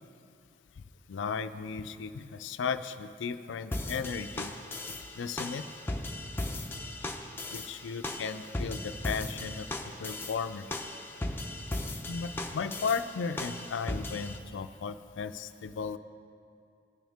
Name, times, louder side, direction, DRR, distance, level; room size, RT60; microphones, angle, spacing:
voice 1, 1.1-4.5 5.1-5.7 7.5-9.7 10.0-10.7 12.1-16.0, left 5 dB, 80° left, 11 dB, 0.4 m, -35 dB
sound 1, 3.7-14.4, left 1 dB, 10° left, 0.5 m, -37 dB
18.0 x 6.3 x 3.4 m, 2.5 s
head